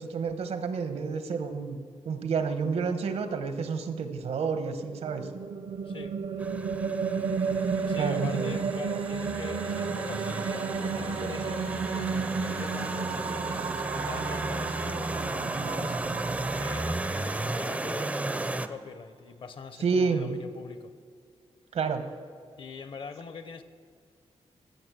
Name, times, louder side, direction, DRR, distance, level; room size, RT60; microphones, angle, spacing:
voice 1, 0.0-1.8 2.0-5.3 8.0-8.6 15.6-15.7 19.8-20.3 21.7-22.0, right 5 dB, 80° right, 8 dB, 1.0 m, -29 dB
sound 1, 4.8-18.2, right 5 dB, 65° right, 0.5 m, -33 dB
sound 2, 6.4-18.7, right 2 dB, 15° right, 0.4 m, -34 dB
voice 2, 7.9-16.0 16.6-20.9 22.6-23.6, left 5 dB, 55° left, 10 dB, 0.7 m, -43 dB
15.0 x 7.0 x 6.1 m, 2.2 s
wide cardioid pair, 165°, 11 cm